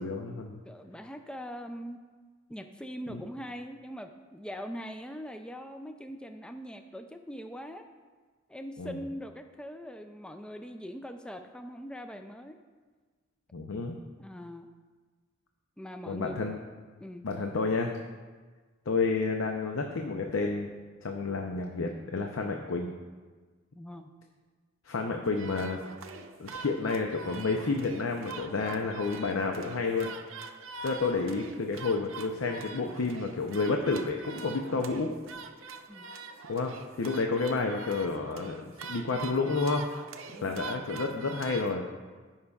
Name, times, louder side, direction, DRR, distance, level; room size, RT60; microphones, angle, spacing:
voice 1, 0.0-0.6 3.1-3.2 8.8-9.0 13.5-14.0 16.1-16.5 17.2-17.9 18.9-20.7 21.0-22.9 24.8-25.8 26.4-30.1 30.8-35.1 36.5-39.9 40.4-41.8, left 3 dB, 80° left, 2 dB, 0.6 m, -30 dB
voice 2, 0.6-2.0 2.5-7.9 8.5-12.6 14.2-14.7 15.8-16.4 17.0-17.3 23.8-24.1 35.9-36.1 40.3-40.7, equal, 5° left, 6 dB, 0.3 m, -42 dB
sound 1, 25.2-41.8, right 4 dB, 75° right, 0.6 m, -44 dB
14.5 x 5.6 x 2.4 m, 1.4 s
head